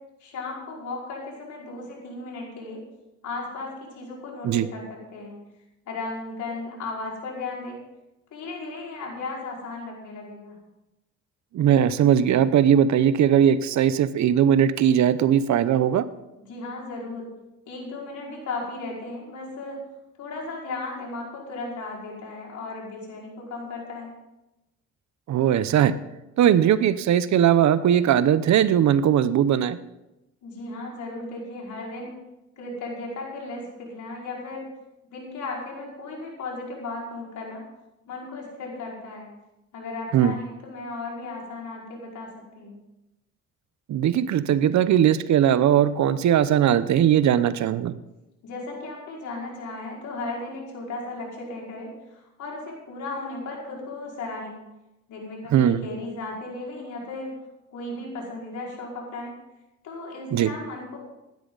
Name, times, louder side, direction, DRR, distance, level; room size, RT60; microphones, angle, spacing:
voice 1, 0.2-2.8 3.2-5.4 5.9-7.8 8.3-10.6 16.5-17.3 17.7-19.8 20.2-24.1 30.4-32.2 32.6-34.7 35.1-37.6 38.0-39.3 39.7-42.8 48.4-51.9 52.4-54.5 55.1-57.3 57.7-59.3 59.8-61.0, left 3 dB, 75° left, -3 dB, 5.3 m, -35 dB
voice 2, 11.5-16.0 25.3-26.0 26.4-29.8 40.1-40.3 43.9-47.9 55.5-55.8 60.3-60.5, right 9 dB, 70° right, 15 dB, 0.8 m, -19 dB
16.5 x 12.0 x 4.0 m, 0.95 s
cardioid pair, 90°, 30 cm